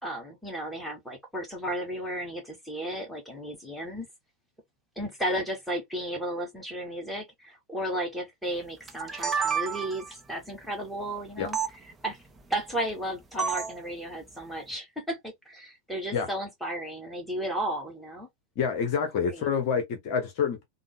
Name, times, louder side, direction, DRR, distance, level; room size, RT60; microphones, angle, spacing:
voice 1, 0.0-4.1 5.0-11.6 12.0-12.2 12.5-18.3 19.2-19.5, right 1 dB, ahead, 1.4 m, -34 dB
sound 1, 8.9-10.1 11.5-11.7 13.4-13.8, right 6 dB, 15° right, 0.6 m, -29 dB
voice 2, 18.6-20.7, left 6 dB, 45° left, 0.7 m, -27 dB
3.6 x 2.0 x 3.3 m
figure-of-eight pair, 90°, 0 cm